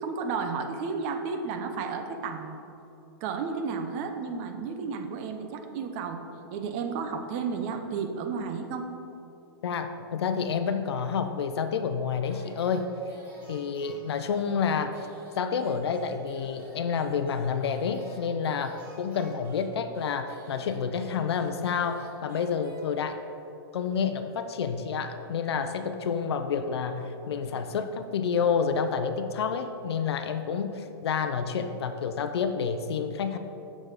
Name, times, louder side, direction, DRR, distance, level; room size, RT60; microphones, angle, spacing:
voice 1, 0.0-2.6 3.2-6.2 6.5-8.9, right 5 dB, 30° right, 6 dB, 0.6 m, -32 dB
voice 2, 9.6-12.9 13.5-15.0 15.4-23.2 23.7-33.4, left 6 dB, 85° left, 8 dB, 0.6 m, -29 dB
sound 1, 12.2-23.4, right 1 dB, 15° right, 1.9 m, -53 dB
8.8 x 6.2 x 4.8 m, 2.9 s
supercardioid pair, 165°, 13 cm